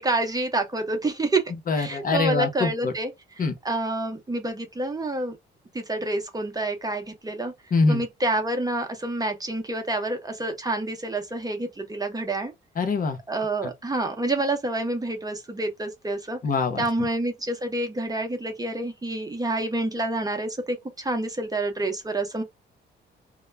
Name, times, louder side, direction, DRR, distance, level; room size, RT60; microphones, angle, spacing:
voice 1, 0.0-1.4 1.8-3.1 3.6-5.4 5.7-7.5 7.9-12.5 13.3-16.4 16.8-22.4, right 2 dB, 20° right, 0.7 m, -28 dB
voice 2, 1.7-2.9 3.4-3.5 7.7-8.0 12.8-13.2 13.6-13.7 16.4-17.1, left 4 dB, 45° left, 0.7 m, -24 dB
2.2 x 2.1 x 3.2 m
cardioid pair, 90°, 20 cm